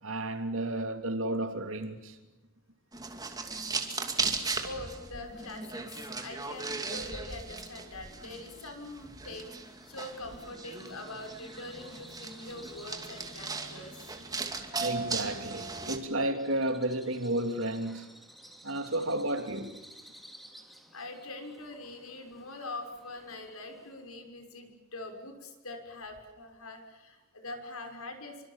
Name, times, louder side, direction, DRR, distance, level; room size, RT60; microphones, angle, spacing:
voice 1, 0.0-2.2 13.7-13.9 14.8-18.1 18.6-19.8, right 1 dB, 60° right, 3.1 m, -32 dB
sound 1, 2.9-16.0, right 4 dB, 15° right, 2.5 m, -37 dB
voice 2, 4.6-9.5 9.9-14.0 20.9-28.4, left 2 dB, 75° left, 5.9 m, -43 dB
Bird vocalization bird call bird song, 9.4-24.1, equal, ahead, 2.6 m, -55 dB
27.5 x 25.0 x 7.4 m
head